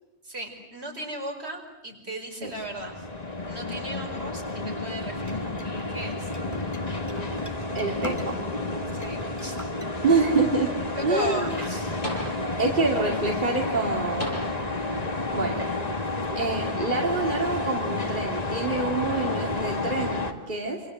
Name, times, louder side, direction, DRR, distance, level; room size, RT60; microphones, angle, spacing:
voice 1, 0.2-3.0 3.5-5.4 5.9-6.3 8.9-9.6 9.9-10.1 11.1-12.0, equal, 75° right, 2 dB, 5.3 m, -36 dB
sound 1, 2.5-20.3, left 2 dB, 35° left, 2.1 m, -31 dB
sound 2, 5.2-8.6 8.9-9.9, left 1 dB, 15° left, 1.8 m, -42 dB
sound 3, 7.1-7.8 8.2-9.2 9.9-10.0 11.6-11.7 12.0-12.8 14.2-15.0 16.1-16.2, equal, 55° left, 7.0 m, -39 dB
voice 2, 7.7-8.4 10.0-10.7 11.0-11.6 12.6-14.4 15.3-15.6 16.4-20.8, right 3 dB, 45° right, 0 dB, 2.9 m, -26 dB
27.5 x 27.0 x 7.9 m, 1.0 s
omnidirectional pair, 1.1 m